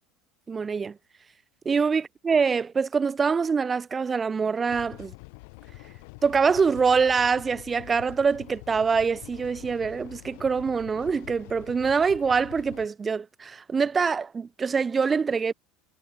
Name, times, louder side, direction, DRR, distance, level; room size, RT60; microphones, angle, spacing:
voice 1, 0.5-1.0 1.6-5.1 6.2-15.5, right 5 dB, 15° right, 3.1 m, -24 dB
sound 1, 4.7-12.9, left 33 dB, 70° left, 4.5 m, -46 dB
cardioid pair, 155°, 0 cm